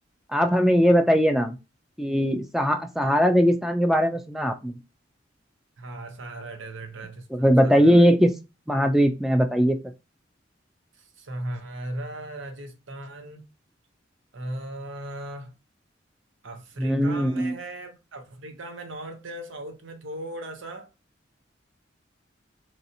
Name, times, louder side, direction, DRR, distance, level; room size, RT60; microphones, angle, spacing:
voice 1, 0.3-1.6 2.0-4.8 7.3-8.3 8.7-9.8 16.8-17.5, equal, ahead, 0.3 m, -20 dB
voice 2, 5.8-8.0 11.0-13.4 14.3-15.5 16.4-20.9, right 1 dB, 85° right, 0.8 m, -37 dB
3.1 x 2.7 x 2.7 m
head